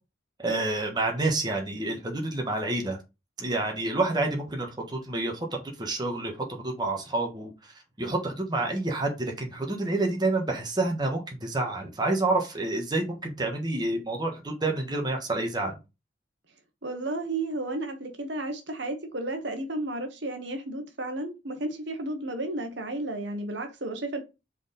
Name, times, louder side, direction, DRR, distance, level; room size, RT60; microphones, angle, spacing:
voice 1, 0.4-3.0 3.4-7.7 8.0-15.8, right 2 dB, 20° right, 1.3 m, -28 dB
voice 2, 16.8-24.2, right 2 dB, 65° right, 1.2 m, -33 dB
4.9 x 4.2 x 5.1 m
head